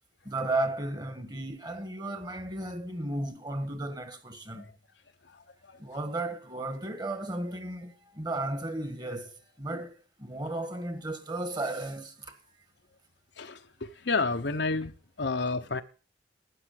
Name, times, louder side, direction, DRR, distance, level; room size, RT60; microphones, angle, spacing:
voice 1, 0.2-4.7 5.8-12.3, right 2 dB, 25° right, 1.6 m, -34 dB
voice 2, 13.4-14.9 15.2-15.8, left 3 dB, 80° left, 1.1 m, -30 dB
12.5 x 9.5 x 6.6 m
head